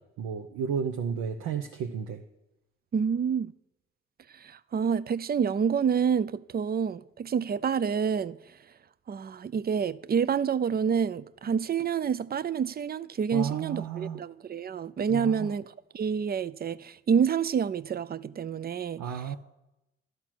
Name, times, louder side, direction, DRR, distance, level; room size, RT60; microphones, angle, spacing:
voice 1, 0.2-2.2 13.3-14.2 15.1-15.5 19.0-19.4, right 7 dB, 75° right, 0.8 m, -32 dB
voice 2, 2.9-3.5 4.3-8.6 9.1-19.4, right 7 dB, 35° right, 0.5 m, -28 dB
12.5 x 4.4 x 6.0 m
hypercardioid pair, 40°, 29 cm